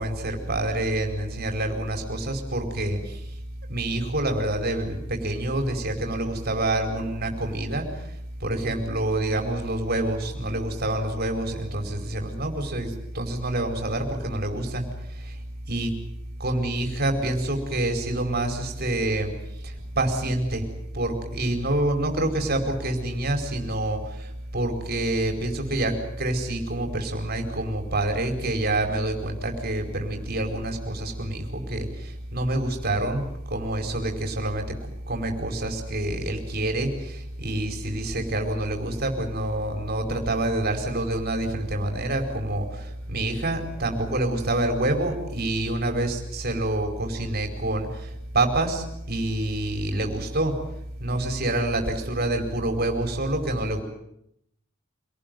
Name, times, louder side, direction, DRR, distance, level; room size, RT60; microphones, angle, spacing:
voice 1, 0.0-3.4 3.7-16.0 16.4-34.8 35.1-50.6 51.0-53.8, right 1 dB, 50° right, 4 dB, 4.9 m, -27 dB
26.5 x 19.0 x 9.3 m, 0.79 s
head